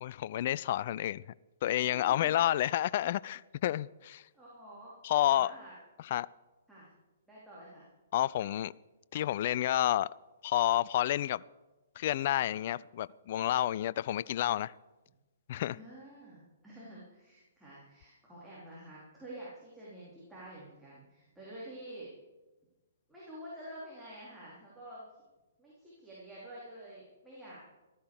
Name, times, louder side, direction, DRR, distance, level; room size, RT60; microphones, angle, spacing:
voice 1, 0.0-1.2 1.6-4.2 5.0-5.5 6.0-6.3 8.1-8.7 9.1-10.1 10.4-11.4 12.0-14.7 15.5-15.8, left 13 dB, 40° left, 0.3 m, -30 dB
voice 2, 1.9-2.3 4.3-4.9 5.2-5.7 6.7-6.9 7.3-7.9 15.7-22.1 23.1-25.0 25.6-27.6, right 1 dB, 5° right, 3.8 m, -49 dB
14.5 x 13.0 x 4.9 m
figure-of-eight pair, 120°, 0 cm